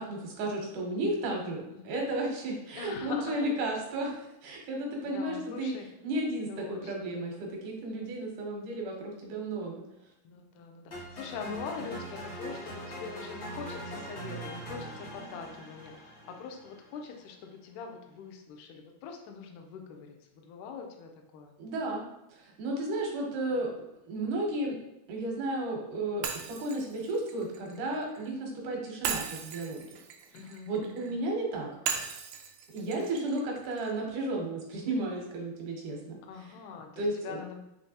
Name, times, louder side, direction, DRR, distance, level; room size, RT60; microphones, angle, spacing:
voice 1, 0.0-5.8 6.0-9.9 21.6-22.0 22.3-24.8 25.1-29.8 30.7-31.7 32.7-36.2 37.0-37.4, right 1 dB, 70° right, 0 dB, 2.2 m, -33 dB
voice 2, 1.4-2.0 2.8-3.5 5.1-5.9 6.5-7.5 10.2-21.6 23.5-23.6 30.3-31.1 36.3-37.6, left 6 dB, 85° left, 3 dB, 1.8 m, -43 dB
sound 1, 10.9-17.0, right 1 dB, 55° left, 0.7 m, -41 dB
Shatter, 26.2-28.3 29.0-31.1 31.9-33.9, right 7 dB, 90° right, 1.8 m, -37 dB
5.8 x 3.2 x 2.8 m, 0.88 s
omnidirectional pair, 4.1 m